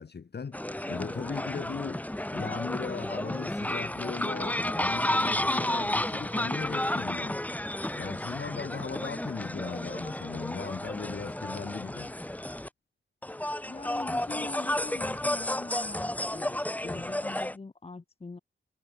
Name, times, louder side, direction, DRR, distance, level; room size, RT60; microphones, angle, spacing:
voice 1, 0.0-2.0 2.3-7.4 8.0-12.1, left 5 dB, 55° left, 3.1 m, -38 dB
sound 1, 0.5-12.7 13.2-17.6, left 1 dB, 5° left, 1.6 m, -32 dB
voice 2, 13.6-18.4, left 3 dB, 30° left, 1.4 m, -42 dB
wide cardioid pair, 105°, 21 cm